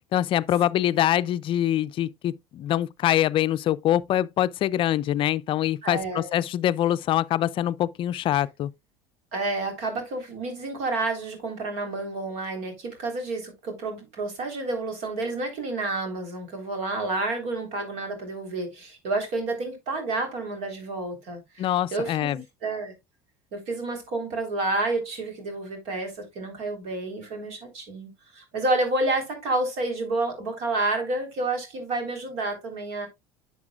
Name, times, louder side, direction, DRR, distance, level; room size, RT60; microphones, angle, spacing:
voice 1, 0.1-8.7 21.6-22.4, left 12 dB, 45° left, 0.5 m, -24 dB
voice 2, 5.8-6.3 9.3-22.9 23.5-33.1, right 2 dB, 65° right, 3.6 m, -30 dB
10.5 x 6.9 x 2.3 m
hypercardioid pair, 70°, 12 cm